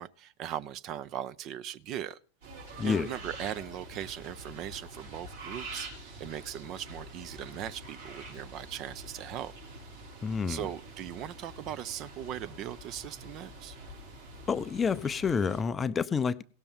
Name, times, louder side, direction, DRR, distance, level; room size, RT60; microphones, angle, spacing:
voice 1, 0.0-2.2 2.8-9.5 10.5-13.8, right 11 dB, 35° right, 0.5 m, -39 dB
sound 1, 2.4-15.6, right 2 dB, 65° right, 4.9 m, -46 dB
voice 2, 2.8-3.1 10.2-10.7 14.5-16.4, left 6 dB, 20° left, 0.5 m, -29 dB
17.0 x 6.9 x 5.4 m
figure-of-eight pair, 90°, 0 cm